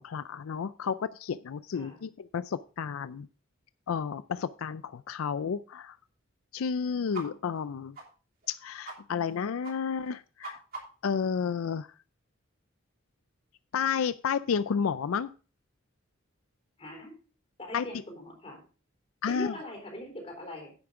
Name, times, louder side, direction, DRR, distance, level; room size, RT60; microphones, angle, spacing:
voice 1, 0.0-3.3 3.9-6.0 6.5-8.0 8.5-10.6 11.0-11.9 13.7-15.3 17.7-17.8 19.2-19.5, left 6 dB, 85° left, 14 dB, 0.4 m, -31 dB
voice 2, 1.7-2.1 16.8-17.2 17.6-18.6 19.3-20.7, left 1 dB, 30° left, 2 dB, 3.6 m, -41 dB
sound 1, 7.1-7.3 7.5-7.6 7.9-8.1 8.4-8.5 8.8-9.0 9.2-9.4 9.6-9.7 10.0-11.1, right 2 dB, 45° right, 3.0 m, -42 dB
10.5 x 8.7 x 3.6 m, 0.36 s
head